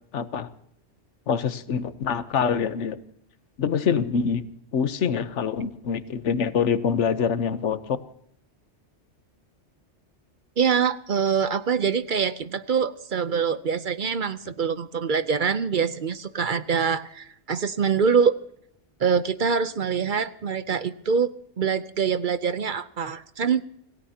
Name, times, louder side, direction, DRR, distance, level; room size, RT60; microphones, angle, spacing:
voice 1, 0.1-0.5 1.3-3.0 3.6-4.5 4.7-8.0, left 6 dB, 85° left, 13 dB, 1.2 m, -25 dB
voice 2, 10.6-18.4 19.0-21.3 21.6-23.6, right 6 dB, 50° right, 14 dB, 0.8 m, -24 dB
26.5 x 17.0 x 2.8 m, 0.69 s
omnidirectional pair, 1.2 m